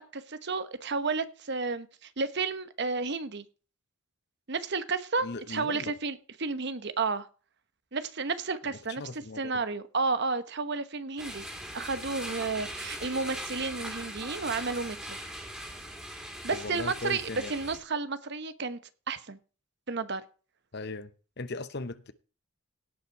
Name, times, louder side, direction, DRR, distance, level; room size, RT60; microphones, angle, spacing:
voice 1, 0.0-3.4 4.5-7.3 7.9-11.4 11.7-15.2 16.4-18.8 19.1-19.4 19.9-20.2, right 4 dB, 50° right, 1.0 m, -32 dB
voice 2, 5.2-5.9 8.6-9.5 16.5-17.5 20.7-21.1 21.4-22.1, left 3 dB, 50° left, 0.9 m, -38 dB
sound 1, 11.2-17.8, equal, 5° right, 2.6 m, -40 dB
17.0 x 5.8 x 4.6 m
head